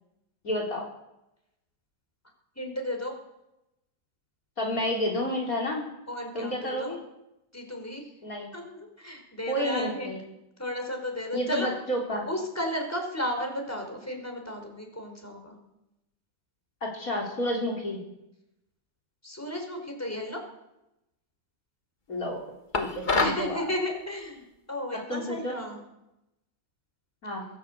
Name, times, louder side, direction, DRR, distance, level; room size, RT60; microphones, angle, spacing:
voice 1, 0.4-0.9 4.6-5.9 6.3-7.0 8.2-8.5 9.5-10.2 11.3-12.3 16.8-18.0 22.1-22.5 22.7-23.6 25.1-25.6 27.2-27.5, equal, 50° left, 0 dB, 4.3 m, -30 dB
voice 2, 2.6-3.1 6.1-7.0 7.5-8.1 8.5-10.2 10.6-11.7 12.3-15.6 19.2-20.4 23.2-25.8, left 1 dB, 10° left, 3 dB, 5.4 m, -34 dB
sound 1, 22.7-23.5, left 3 dB, 30° left, 1.5 m, -26 dB
21.0 x 18.5 x 8.5 m, 0.89 s
omnidirectional pair, 1.9 m